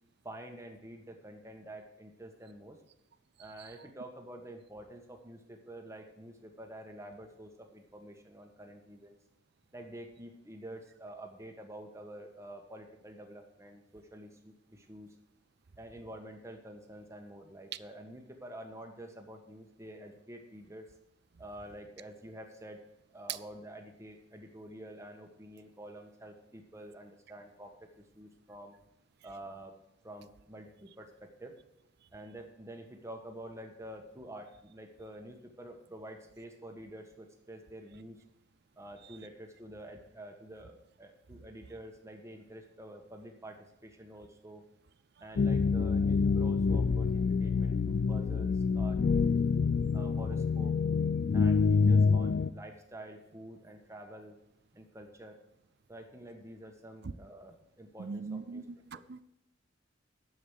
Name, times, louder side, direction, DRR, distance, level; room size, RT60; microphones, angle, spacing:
voice 1, 0.2-2.8 3.4-9.2 9.7-15.2 15.8-20.9 21.4-22.8 23.1-28.8 29.2-29.7 30.0-31.5 32.1-38.2 38.8-44.6 45.2-49.3 49.9-50.8 51.3-54.4 54.7-55.4 55.9-58.6 58.9-59.0, right 1 dB, 15° right, 4 dB, 1.4 m, -48 dB
sound 1, 45.4-52.5, left 5 dB, 45° left, 0.3 m, -27 dB
voice 2, 58.0-58.6 58.9-59.2, right 4 dB, 55° right, 16 dB, 0.5 m, -40 dB
10.0 x 7.3 x 6.3 m, 0.82 s
head